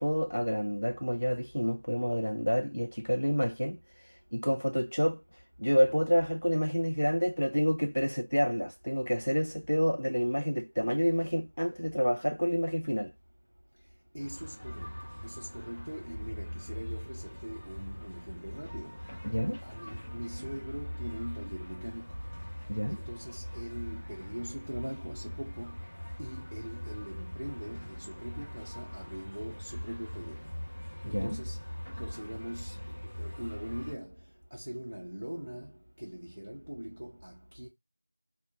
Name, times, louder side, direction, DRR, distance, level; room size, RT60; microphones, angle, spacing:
voice 1, 0.0-5.2 5.6-13.1 19.2-19.6 22.7-23.0 31.1-31.4, equal, 85° left, 0.3 m, -29 dB
voice 2, 14.1-15.0 15.2-19.0 19.6-22.2 22.9-25.8 26.2-30.5 31.0-31.6 32.0-32.8 33.0-34.2 34.5-37.7, equal, 55° right, 0.5 m, -41 dB
sound 1, 14.2-33.9, equal, 25° left, 1.1 m, -42 dB
2.4 x 2.1 x 2.7 m
figure-of-eight pair, 175°, 0 cm